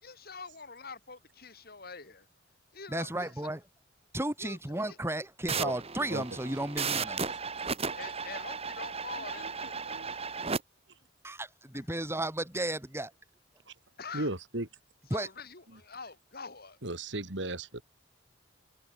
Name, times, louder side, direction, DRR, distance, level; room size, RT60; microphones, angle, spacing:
voice 1, 0.0-2.3 2.7-3.5 4.4-5.0 8.0-9.8 11.7-11.8 14.0-14.3 15.1-16.8, left 4 dB, 55° left, 6.0 m, -45 dB
voice 2, 2.9-3.6 4.1-7.3 11.2-13.1 15.1-15.3, right 1 dB, 15° right, 2.8 m, -34 dB
sound 1, 5.5-10.6, right 5 dB, 35° right, 2.7 m, -35 dB
voice 3, 9.2-9.5 9.8-10.1 14.1-14.7 15.7-15.8 16.8-17.8, right 2 dB, 70° right, 3.3 m, -36 dB
head